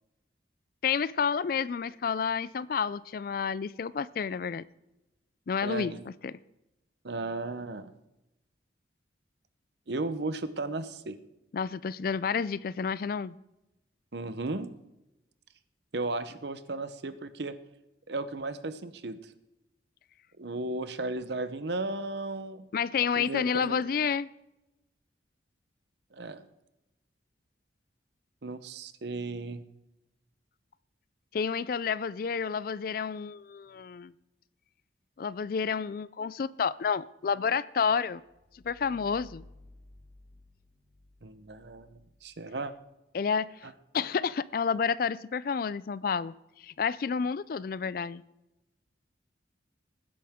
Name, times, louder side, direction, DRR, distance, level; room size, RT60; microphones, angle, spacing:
voice 1, 0.8-4.6 5.5-5.9 6.2-6.3 11.5-13.3 22.7-24.3 31.3-34.1 35.2-38.2 38.6-39.4 43.1-43.5 43.9-46.3 46.6-48.2, left 6 dB, 50° left, 19 dB, 0.3 m, -30 dB
voice 2, 5.6-6.0 7.0-7.9 9.9-11.2 14.1-14.7 15.9-17.5 18.1-19.2 20.4-22.7 23.2-23.8 26.1-26.5 28.4-29.6 41.2-42.7, right 2 dB, 65° right, 12 dB, 0.8 m, -35 dB
sound 1, 38.1-42.8, left 1 dB, 15° left, 1.3 m, -56 dB
19.0 x 10.0 x 3.6 m, 0.94 s
head